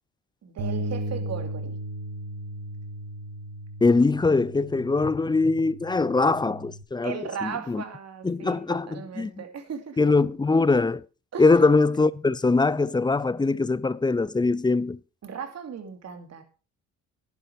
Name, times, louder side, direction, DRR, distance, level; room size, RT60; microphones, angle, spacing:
voice 1, 0.4-1.8 7.0-10.1 11.3-11.6 15.2-16.4, right 6 dB, 60° right, 2.7 m, -37 dB
Bass guitar, 0.6-6.8, right 1 dB, 80° right, 1.9 m, -36 dB
voice 2, 3.8-7.8 8.2-9.3 10.0-11.0 11.4-15.0, left 3 dB, 15° left, 0.5 m, -22 dB
11.0 x 10.5 x 4.6 m
cardioid pair, 90°, 30 cm